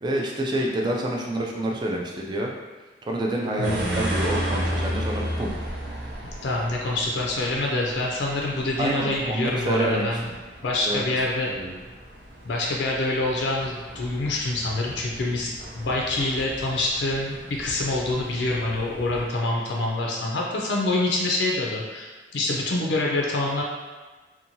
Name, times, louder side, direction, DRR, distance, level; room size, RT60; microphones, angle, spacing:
voice 1, 0.0-2.5 3.1-5.5 8.8-10.0 10.9-11.2 11.5-11.7, right 1 dB, 25° right, 0 dB, 0.3 m, -27 dB
voice 2, 3.6-4.0 6.4-10.3 10.6-11.5 12.4-23.6, left 2 dB, 75° left, -2 dB, 0.4 m, -26 dB
sound 1, 3.6-19.3, equal, 75° right, 0.6 m, -34 dB
2.8 x 2.2 x 2.6 m, 1.3 s
head